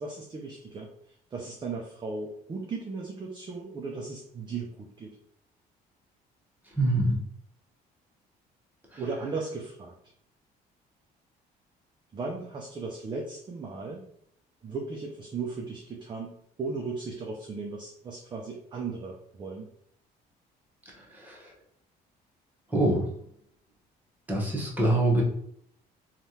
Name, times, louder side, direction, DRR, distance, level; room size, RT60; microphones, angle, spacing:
voice 1, 0.0-5.2 9.0-9.9 12.1-14.0 14.6-16.3 16.6-19.7, right 4 dB, 25° right, 1 dB, 0.4 m, -36 dB
voice 2, 6.8-7.2 8.9-9.0 21.1-21.4 22.7-23.1 24.3-25.2, right 1 dB, 10° right, -3 dB, 1.0 m, -24 dB
3.2 x 2.3 x 2.7 m, 0.69 s
cardioid pair, 110°, 17 cm